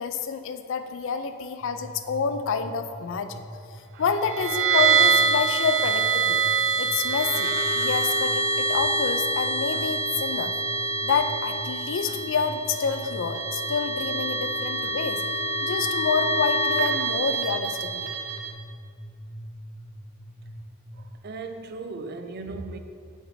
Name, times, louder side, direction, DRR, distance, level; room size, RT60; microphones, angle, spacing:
voice 1, 0.0-3.4 4.0-6.4 6.8-10.5 11.0-15.2 15.6-18.1, left 5 dB, 60° left, 9 dB, 0.4 m, -28 dB
sound 1, 1.6-21.2, equal, 10° left, 0.6 m, -43 dB
sound 2, 4.2-18.5, right 4 dB, 90° right, 0.7 m, -25 dB
voice 2, 21.2-22.8, right 3 dB, 45° right, 7 dB, 0.4 m, -36 dB
7.2 x 6.0 x 2.7 m, 2.2 s
head